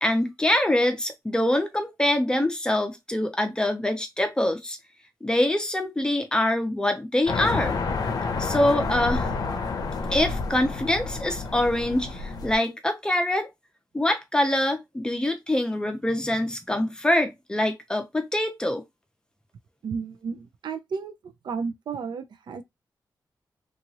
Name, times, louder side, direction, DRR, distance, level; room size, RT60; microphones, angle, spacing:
voice 1, 0.0-4.8 5.2-7.8 8.4-9.3 10.1-13.5 13.9-18.8, left 1 dB, 10° left, 0.6 m, -24 dB
sound 1, 7.3-12.5, left 4 dB, 60° left, 0.6 m, -29 dB
voice 2, 19.8-22.6, right 5 dB, 85° right, 0.5 m, -33 dB
2.9 x 2.4 x 2.7 m
wide cardioid pair, 175°, 8 cm